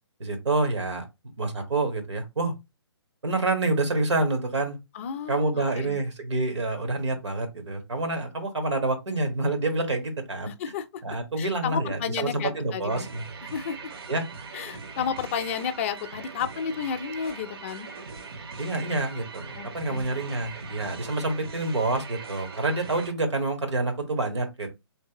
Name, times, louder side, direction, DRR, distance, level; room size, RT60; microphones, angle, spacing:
voice 1, 0.2-1.1 1.4-2.5 3.2-4.8 5.3-10.5 11.0-13.2 14.1-14.2 18.6-24.7, right 2 dB, 80° right, 1.3 m, -27 dB
voice 2, 4.9-6.0 10.5-11.0 11.4-13.1 13.4-13.8 14.5-17.9 19.6-20.2, left 7 dB, 30° left, 0.4 m, -32 dB
sound 1, 12.9-23.1, right 4 dB, 55° right, 0.7 m, -41 dB
3.2 x 3.1 x 2.8 m
figure-of-eight pair, 140°, 15 cm